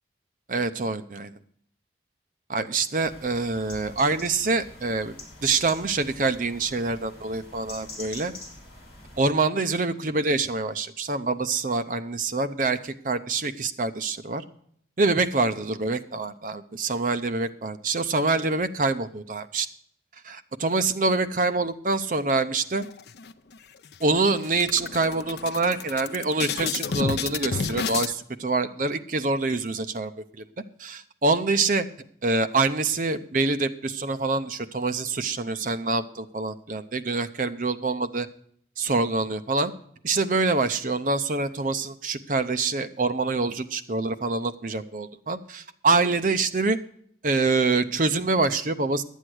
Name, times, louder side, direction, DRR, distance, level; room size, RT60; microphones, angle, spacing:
voice 1, 0.5-1.3 2.5-5.2 5.4-8.3 9.2-14.4 15.0-19.7 20.2-22.8 24.0-30.1 30.4-30.5 30.8-31.9 32.2-38.3 38.8-39.7 40.0-46.8 47.2-49.0, right 3 dB, 45° right, 10 dB, 0.7 m, -25 dB
sound 1, 3.0-9.2, left 2 dB, 30° left, 3.5 m, -45 dB
sound 2, 22.8-23.6 23.9-24.1 24.4-28.1, left 5 dB, 60° left, 0.5 m, -31 dB
11.5 x 8.2 x 6.2 m, 0.65 s
head